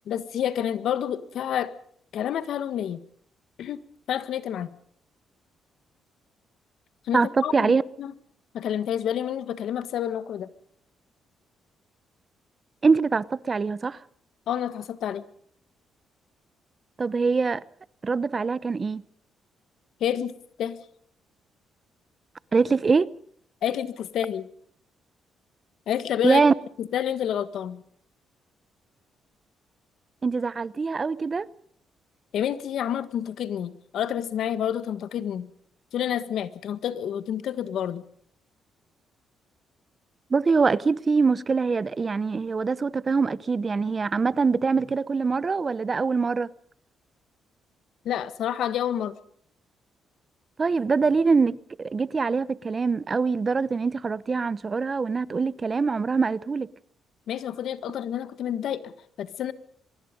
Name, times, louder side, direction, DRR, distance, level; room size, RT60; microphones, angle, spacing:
voice 1, 0.1-1.7 2.1-3.0 3.6-3.8 4.1-4.7 7.1-8.1 8.5-10.5 14.5-15.2 20.0-20.8 23.6-24.5 25.9-26.4 26.8-27.8 32.3-35.5 35.9-38.0 48.0-49.1 57.3-59.5, left 10 dB, 70° left, 1.6 m, -29 dB
voice 2, 7.1-7.8 12.8-14.0 17.0-17.6 18.0-19.0 22.5-23.1 26.2-26.5 30.2-31.5 40.3-46.5 50.6-56.7, right 4 dB, 35° right, 0.8 m, -23 dB
24.5 x 22.5 x 5.3 m
cardioid pair, 90°, 0 cm